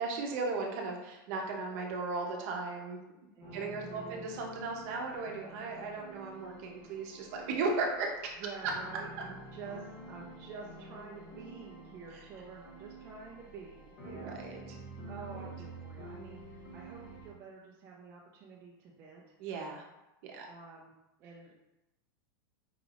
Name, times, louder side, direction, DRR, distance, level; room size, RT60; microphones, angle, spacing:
voice 1, 0.0-3.0 3.5-8.1 14.1-14.6 15.3-15.4 19.4-19.8 20.2-20.5, right 3 dB, 40° right, 0 dB, 0.7 m, -36 dB
voice 2, 3.3-4.3 8.4-14.4 15.0-19.4 20.5-20.9 21.2-21.5, right 5 dB, 20° right, -3 dB, 0.4 m, -48 dB
sound 1, 3.4-17.3, right 2 dB, 35° left, 1.3 m, -49 dB
4.8 x 3.3 x 2.5 m, 0.96 s
supercardioid pair, 170°, 12 cm